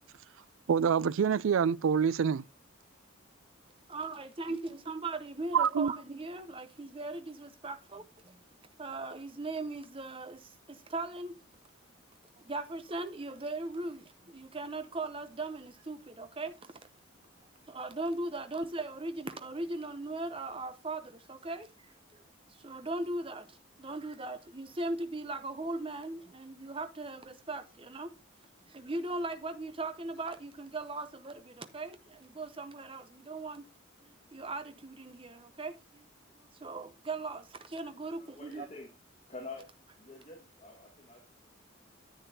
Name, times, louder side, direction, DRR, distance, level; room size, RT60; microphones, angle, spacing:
voice 1, 0.7-2.4 5.5-5.9, right 7 dB, 75° right, 0.4 m, -26 dB
voice 2, 3.9-8.4 8.8-11.4 12.3-16.7 17.6-22.2 22.5-28.1 28.7-33.7 34.0-36.1 36.4-38.7, right 2 dB, 25° right, 0.7 m, -39 dB
voice 3, 38.0-38.9 39.3-39.7 40.0-41.2, left 3 dB, 35° left, 1.7 m, -47 dB
10.0 x 8.7 x 2.8 m
head